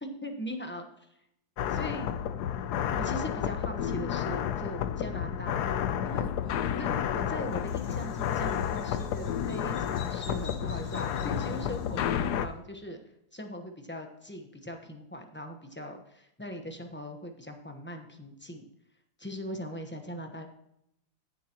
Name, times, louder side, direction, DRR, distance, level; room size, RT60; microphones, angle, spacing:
voice 1, 0.0-1.2 1.7-2.1 2.9-5.8 6.0-6.3 6.8-13.0 13.3-18.6 19.2-20.5, equal, 10° left, 4 dB, 0.7 m, -40 dB
sound 1, 1.6-12.5, left 9 dB, 70° left, 1.1 m, -31 dB
Bird vocalization bird call bird song, 6.0-12.3, left 4 dB, 90° left, 3.1 m, -51 dB
16.0 x 7.0 x 3.0 m, 0.77 s
omnidirectional pair, 2.0 m